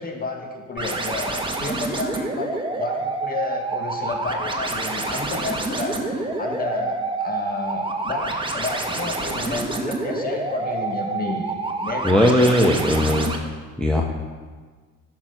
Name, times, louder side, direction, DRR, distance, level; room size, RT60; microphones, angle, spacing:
voice 1, 0.0-12.4, left 3 dB, 25° left, 1 dB, 2.2 m, -31 dB
sound 1, 0.8-13.4, right 3 dB, 15° right, 1.7 m, -27 dB
voice 2, 12.0-13.5 13.8-14.0, left 1 dB, ahead, -1 dB, 1.3 m, -18 dB
13.0 x 6.4 x 5.4 m, 1.5 s
hypercardioid pair, 70°, 37 cm